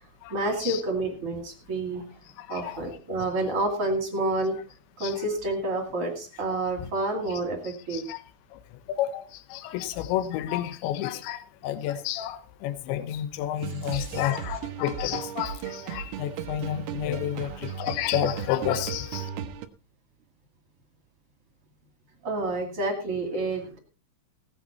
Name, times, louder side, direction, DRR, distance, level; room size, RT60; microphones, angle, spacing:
voice 1, 0.3-2.0 2.5-4.6 5.0-8.0 13.6-14.3 17.3-17.6 22.2-23.8, right 2 dB, 40° right, 3 dB, 2.3 m, -29 dB
voice 2, 2.4-2.8 5.0-5.2 7.9-8.2 8.5-8.6 8.9-19.3, left 11 dB, 75° left, 10 dB, 3.3 m, -30 dB
sound 1, 13.6-19.7, right 8 dB, 80° right, 2.3 m, -36 dB
17.5 x 9.4 x 4.2 m, 0.35 s
omnidirectional pair, 5.7 m